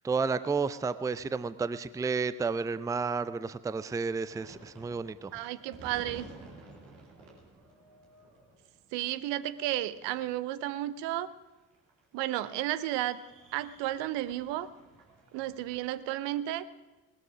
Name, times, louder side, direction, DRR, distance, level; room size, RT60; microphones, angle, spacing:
voice 1, 0.0-5.3, right 4 dB, 5° right, 15 dB, 0.5 m, -31 dB
sound 1, 4.3-15.8, right 3 dB, 75° right, 3.0 m, -53 dB
voice 2, 5.3-6.3 8.9-11.3 12.1-13.2 13.5-14.7 15.3-16.6, right 14 dB, 60° right, 15 dB, 0.7 m, -33 dB
19.0 x 13.0 x 5.0 m, 1.1 s
figure-of-eight pair, 45°, 47 cm